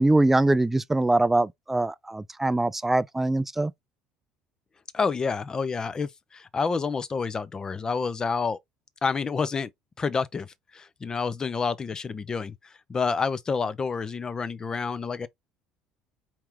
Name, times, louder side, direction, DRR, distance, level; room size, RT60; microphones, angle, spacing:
voice 1, 0.0-3.7, right 2 dB, 10° right, 0.4 m, -23 dB
voice 2, 4.9-8.6 9.0-9.7 10.0-15.3, left 5 dB, 30° left, 0.7 m, -29 dB
4.5 x 3.0 x 3.6 m
hypercardioid pair, 70°, 2 cm